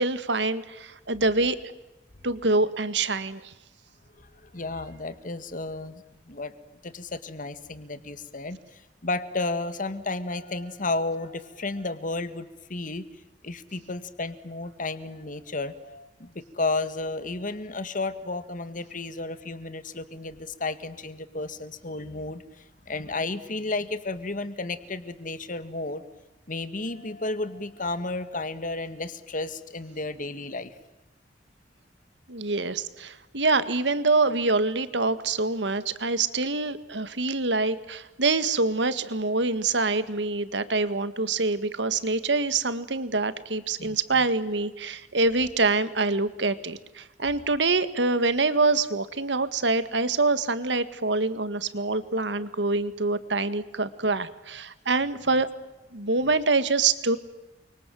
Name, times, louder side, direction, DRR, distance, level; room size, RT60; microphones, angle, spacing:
voice 1, 0.0-1.6 2.2-3.5 32.3-55.5 55.9-57.2, right 3 dB, 80° right, 13 dB, 1.9 m, -25 dB
voice 2, 4.2-6.5 6.8-13.0 13.4-26.0 26.5-30.7 43.8-44.3, left 2 dB, 50° left, 12 dB, 2.0 m, -33 dB
29.5 x 25.0 x 7.7 m, 1.0 s
head